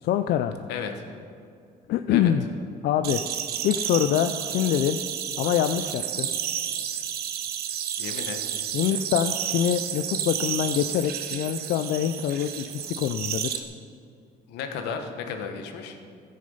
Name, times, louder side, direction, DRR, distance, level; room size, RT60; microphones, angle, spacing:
voice 1, 0.0-0.6 1.9-2.5 2.8-3.2 3.6-5.0 5.4-6.3 8.7-13.6, left 10 dB, 70° left, 9 dB, 0.4 m, -25 dB
sound 1, 3.0-13.6, right 9 dB, 65° right, 0.9 m, -31 dB
voice 2, 8.0-8.5 14.5-16.0, left 6 dB, 85° left, 5 dB, 1.1 m, -34 dB
14.5 x 6.5 x 5.5 m, 2.3 s
cardioid pair, 110°, 17 cm